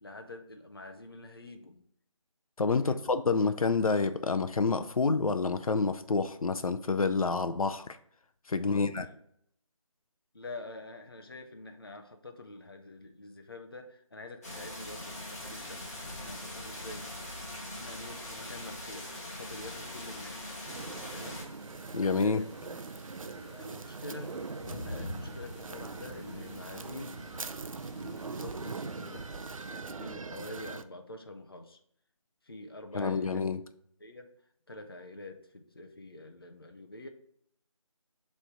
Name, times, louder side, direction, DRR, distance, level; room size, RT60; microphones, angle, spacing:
voice 1, 0.0-1.8 2.8-3.0 8.6-9.1 10.3-17.1 17.8-20.5 21.1-21.5 22.1-22.5 23.1-24.4 24.7-27.2 27.9-29.3 29.7-31.8 32.4-33.5 34.0-34.3 34.7-37.1, left 2 dB, 45° left, 5 dB, 0.7 m, -46 dB
voice 2, 2.6-7.9 8.5-9.0 21.9-22.4 32.9-33.6, left 4 dB, 90° left, 9 dB, 0.6 m, -28 dB
sound 1, 14.4-21.4, left 1 dB, 30° left, 1.4 m, -42 dB
sound 2, 17.9-29.7, left 1 dB, 5° left, 2.6 m, -49 dB
sound 3, 20.7-30.8, right 4 dB, 75° right, 0.5 m, -42 dB
6.3 x 3.3 x 4.5 m, 0.68 s
figure-of-eight pair, 180°, 18 cm